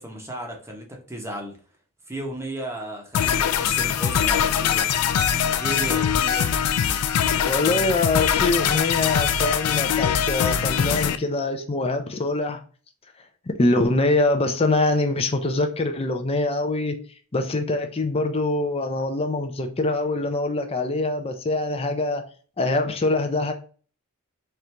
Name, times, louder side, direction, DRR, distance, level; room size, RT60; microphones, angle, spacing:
voice 1, 0.0-1.5 2.1-4.9 5.6-6.6, right 1 dB, 10° right, 0.8 m, -34 dB
sound 1, 3.1-11.2, left 8 dB, 90° left, 0.4 m, -22 dB
voice 2, 7.4-12.6 13.5-17.0 17.3-22.2 22.6-23.5, left 2 dB, 25° left, 0.5 m, -24 dB
4.4 x 2.5 x 3.3 m
head